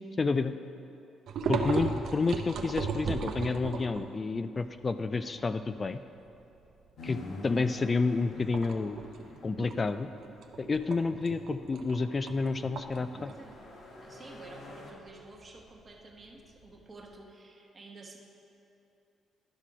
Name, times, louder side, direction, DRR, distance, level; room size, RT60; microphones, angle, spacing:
voice 1, 0.2-0.6 1.5-6.0 7.0-9.0 9.4-10.1 10.6-13.3, left 4 dB, 30° left, 11 dB, 0.3 m, -30 dB
sound 1, 1.3-4.2 4.7-4.8 5.1-6.3 6.7-7.0 7.3-7.9 8.3-17.1, right 5 dB, 70° right, 0.7 m, -36 dB
sound 2, 7.0-10.5 11.6-14.9, left 2 dB, 65° left, 1.3 m, -47 dB
voice 2, 12.9-13.5 14.0-18.2, right 3 dB, 30° right, 0 dB, 1.3 m, -51 dB
11.5 x 5.7 x 4.9 m, 2.9 s
cardioid pair, 90°, 0 cm